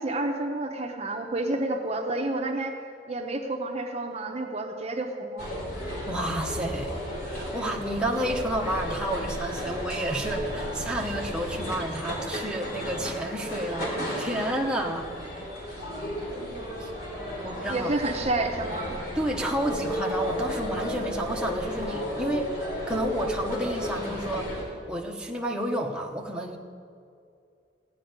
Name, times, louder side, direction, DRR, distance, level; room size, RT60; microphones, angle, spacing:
voice 1, 0.0-2.8 3.1-5.5 17.7-18.9, right 2 dB, 35° right, 3 dB, 0.9 m, -29 dB
sound 1, 5.4-24.6, equal, 55° left, 3.8 m, -33 dB
voice 2, 5.8-6.9 7.2-15.1 15.7-15.8 16.8-16.9 17.4-17.9 19.1-22.5 22.9-26.6, right 1 dB, 5° right, 0 dB, 1.1 m, -30 dB
16.0 x 5.6 x 9.5 m, 2.4 s
head